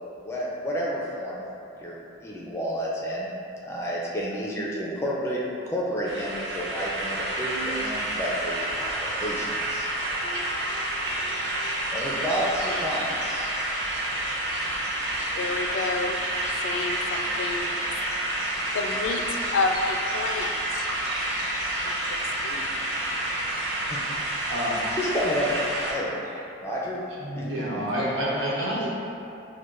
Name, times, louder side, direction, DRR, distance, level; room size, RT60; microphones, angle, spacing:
voice 1, 0.2-1.5 1.8-3.3 3.6-13.6 23.9-24.2 24.7-27.0 27.3-27.4, equal, 15° left, -5 dB, 0.5 m, -31 dB
sound 1, 6.1-25.9, right 1 dB, 65° right, 0.6 m, -29 dB
voice 2, 14.6-18.1 18.4-20.9 21.8-23.9, left 3 dB, 85° left, 4 dB, 0.3 m, -32 dB
voice 3, 27.2-28.9, equal, 85° right, -8 dB, 1.1 m, -28 dB
6.3 x 2.2 x 2.5 m, 2.8 s
head